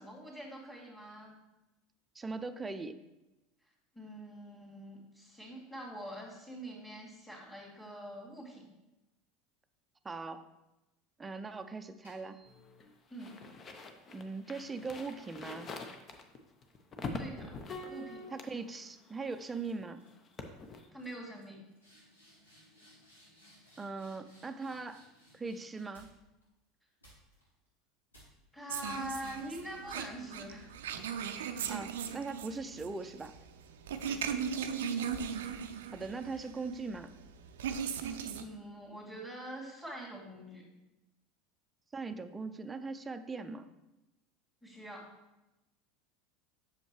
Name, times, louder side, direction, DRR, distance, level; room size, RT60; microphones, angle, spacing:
voice 1, 0.0-1.3 3.9-8.7 13.1-13.3 17.2-17.6 17.9-18.2 20.9-21.6 28.5-30.7 34.0-34.7 38.0-40.7 44.6-45.0, right 1 dB, 10° left, -8 dB, 2.4 m, -45 dB
voice 2, 2.2-3.0 10.0-10.5 11.2-12.4 14.1-15.7 18.3-20.0 23.8-25.0 25.3-26.1 31.7-33.3 35.9-37.1 41.9-43.7, right 4 dB, 20° right, 9 dB, 0.5 m, -40 dB
sound 1, 11.8-13.1 13.7-17.2 17.6-18.0 18.7-19.0 19.2-19.7 19.9-20.4 20.6-20.7 21.0-26.4 27.0-27.7 28.1-28.6 29.2-29.7, equal, 90° left, 2.6 m, -63 dB
sound 2, 12.5-19.8 20.1-20.9, left 3 dB, 35° left, 0.8 m, -45 dB
sound 3, 28.7-38.4, right 7 dB, 70° right, 0.4 m, -38 dB
7.8 x 6.6 x 3.1 m, 0.97 s
figure-of-eight pair, 75°, 0 cm